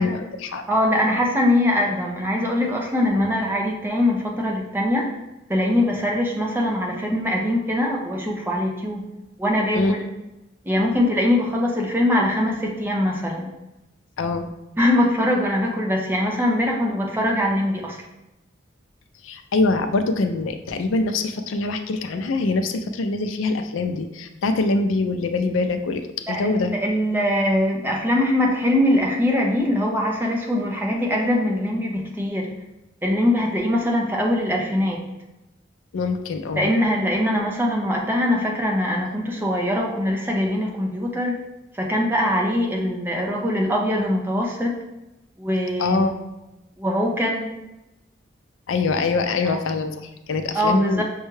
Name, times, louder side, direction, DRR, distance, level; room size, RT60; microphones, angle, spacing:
voice 1, 0.0-0.6 3.1-3.4 9.7-10.0 14.2-14.5 19.2-26.7 35.9-36.7 45.8-46.1 48.7-51.0, left 3 dB, 80° left, 7 dB, 0.4 m, -24 dB
voice 2, 0.7-5.1 5.5-9.0 9.4-10.1 10.6-13.5 14.8-18.0 26.3-32.5 33.0-35.0 36.6-41.4 41.7-44.8 45.4-46.1 46.8-47.5 49.4-49.6 50.5-51.0, left 1 dB, 10° right, -1 dB, 0.5 m, -22 dB
6.2 x 2.2 x 3.1 m, 0.97 s
head